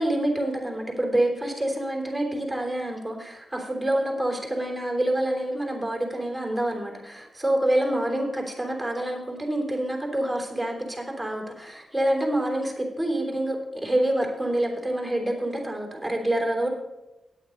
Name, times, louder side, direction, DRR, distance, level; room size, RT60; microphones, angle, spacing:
voice 1, 0.0-16.7, right 1 dB, ahead, 1 dB, 3.5 m, -27 dB
9.6 x 8.5 x 6.5 m, 1.0 s
cardioid pair, 95°, 0 cm